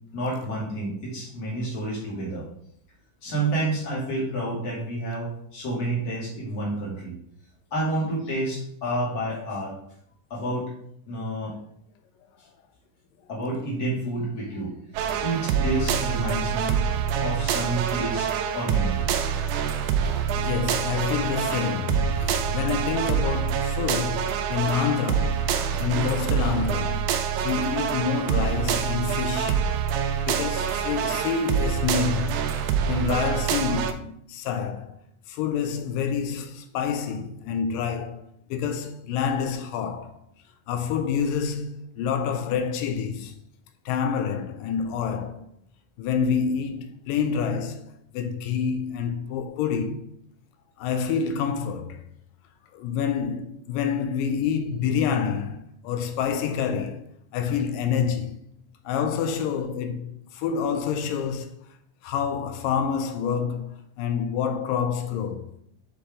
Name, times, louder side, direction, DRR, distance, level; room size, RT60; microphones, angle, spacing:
voice 1, 0.1-2.5 3.2-7.1 7.7-9.7 10.3-10.7 11.1-11.5 13.3-14.7 15.2-16.8 17.2-19.1, right 1 dB, 30° left, 2.2 m, -29 dB
sound 1, 14.9-33.9, right 8 dB, 80° right, 1.7 m, -26 dB
voice 2, 20.0-25.5 25.8-27.1 27.4-29.7 30.3-32.4 32.9-35.0 35.3-40.2 40.7-43.3 43.9-45.5 46.0-47.9 48.1-50.2 50.8-52.0 52.7-58.4 58.9-61.5 62.0-65.5, left 7 dB, 90° left, 2.3 m, -27 dB
6.1 x 4.9 x 3.6 m
omnidirectional pair, 3.8 m